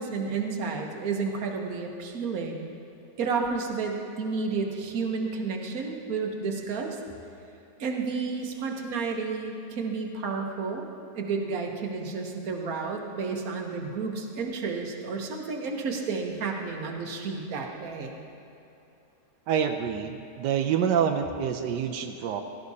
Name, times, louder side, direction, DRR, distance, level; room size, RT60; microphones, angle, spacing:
voice 1, 0.0-2.7 3.2-7.0 7.8-10.9 11.1-18.2, right 4 dB, 60° right, 1 dB, 1.5 m, -31 dB
voice 2, 19.5-22.4, right 8 dB, 90° right, 4 dB, 1.3 m, -27 dB
16.0 x 13.0 x 2.8 m, 2.9 s
omnidirectional pair, 1.8 m